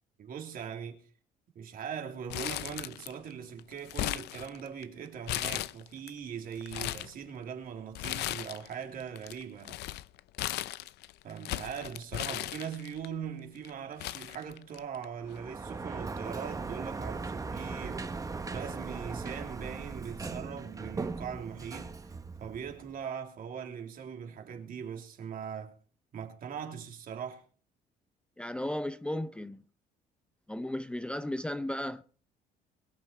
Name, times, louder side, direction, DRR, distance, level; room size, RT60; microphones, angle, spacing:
voice 1, 0.2-1.0 1.5-9.8 11.2-18.2 18.5-21.9 22.4-25.8 26.1-27.4, right 7 dB, 55° right, 3.1 m, -41 dB
Crumpling crinkling, 2.3-3.3 3.6-4.8 5.3-6.1 6.5-7.1 7.9-8.7 9.0-13.1 13.6-13.7 14.0-15.0 15.4-15.5 16.4-16.7, left 16 dB, 80° left, 0.6 m, -36 dB
Sliding door, 15.2-23.0, right 4 dB, 20° right, 1.0 m, -39 dB
voice 2, 28.4-29.6 30.5-32.0, left 1 dB, 5° left, 0.6 m, -35 dB
22.5 x 8.2 x 4.5 m
cardioid pair, 110°, 17 cm